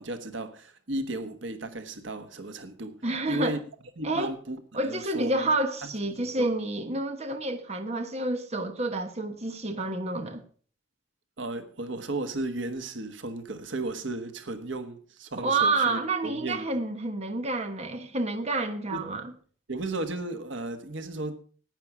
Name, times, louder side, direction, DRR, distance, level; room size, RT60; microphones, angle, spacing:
voice 1, 0.0-3.0 3.3-3.6 4.0-5.5 5.8-5.9 6.2-6.5 11.4-16.6 18.9-19.0 19.7-21.4, right 2 dB, 90° right, 1.4 m, -34 dB
voice 2, 3.0-3.6 4.0-4.3 4.7-10.4 15.4-19.3, right 2 dB, 35° right, 1.2 m, -29 dB
11.0 x 9.5 x 6.0 m
head